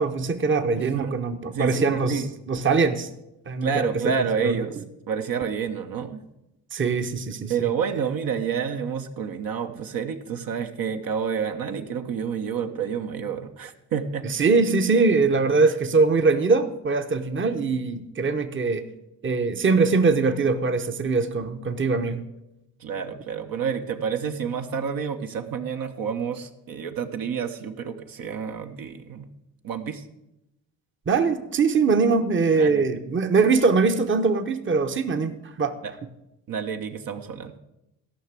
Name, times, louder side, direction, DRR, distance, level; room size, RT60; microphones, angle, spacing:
voice 1, 0.0-3.1 3.5-4.1 4.4-4.5 6.7-7.7 14.2-18.9 19.2-22.2 31.1-35.7, right 4 dB, 30° right, 8 dB, 0.9 m, -22 dB
voice 2, 0.8-1.2 1.5-2.3 3.6-4.8 5.1-6.2 7.5-14.3 22.8-29.3 29.6-30.1 32.5-32.9 35.8-35.9 36.5-37.6, right 7 dB, 65° right, 6 dB, 1.0 m, -29 dB
13.0 x 5.8 x 7.4 m, 0.90 s
supercardioid pair, 70°, 37 cm